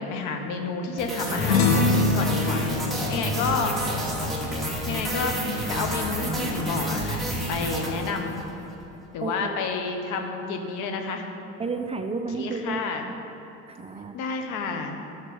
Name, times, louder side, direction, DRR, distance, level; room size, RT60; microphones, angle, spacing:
voice 1, 0.0-2.7 3.1-3.7 4.9-5.4 5.7-8.4 9.1-11.2 12.4-13.0 14.1-15.0, left 4 dB, 65° left, 4 dB, 1.3 m, -30 dB
sound 1, 1.0-8.5, right 1 dB, ahead, 2.2 m, -29 dB
sound 2, 1.3-6.0, left 4 dB, 85° left, 1.0 m, -26 dB
voice 2, 9.2-9.6 11.6-13.2 13.7-14.2, right 4 dB, 20° right, 6 dB, 0.5 m, -32 dB
11.5 x 6.3 x 5.5 m, 2.9 s
supercardioid pair, 100°, 33 cm